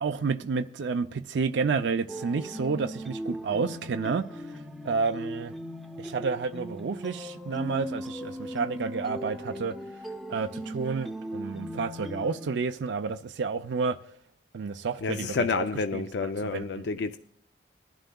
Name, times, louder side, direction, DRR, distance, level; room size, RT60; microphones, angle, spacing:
voice 1, 0.0-5.5 6.0-9.8 10.3-14.0 14.5-15.7 15.9-16.0 16.5-16.8, right 4 dB, 80° right, 0.4 m, -30 dB
sound 1, 2.1-12.5, equal, ahead, 0.6 m, -38 dB
voice 2, 15.0-17.2, left 4 dB, 70° left, 0.5 m, -29 dB
20.5 x 11.5 x 2.3 m
head